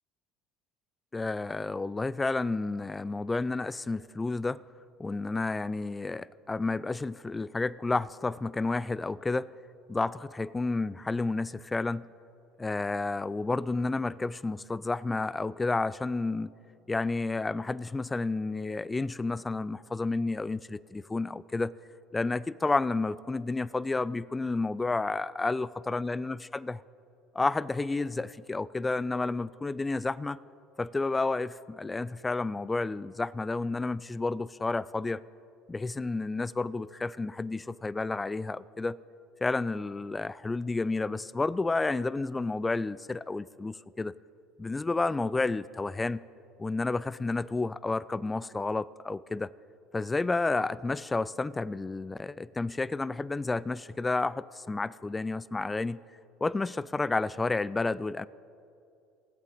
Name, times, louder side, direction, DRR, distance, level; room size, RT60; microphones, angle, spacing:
voice 1, 1.1-4.6 5.0-9.5 9.9-12.1 12.6-16.5 16.9-21.7 22.1-26.8 27.3-30.4 30.8-35.2 35.7-39.0 39.4-44.1 44.6-46.2 46.6-49.5 49.9-56.0 56.4-58.3, left 3 dB, 20° left, 20 dB, 0.3 m, -31 dB
18.0 x 8.1 x 4.0 m, 2.6 s
hypercardioid pair, 70°, 0 cm